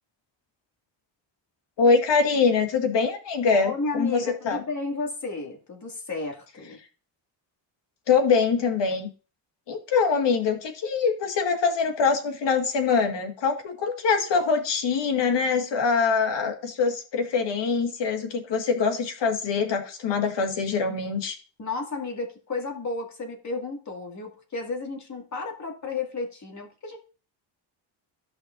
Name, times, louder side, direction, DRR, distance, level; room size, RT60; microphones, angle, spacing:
voice 1, 1.8-4.6 8.1-9.1 9.7-21.4, left 5 dB, 60° left, 5 dB, 1.9 m, -24 dB
voice 2, 3.5-6.8 21.6-27.0, left 3 dB, 35° left, 1 dB, 2.3 m, -33 dB
13.5 x 5.7 x 2.6 m, 0.36 s
cardioid pair, 105°, 48 cm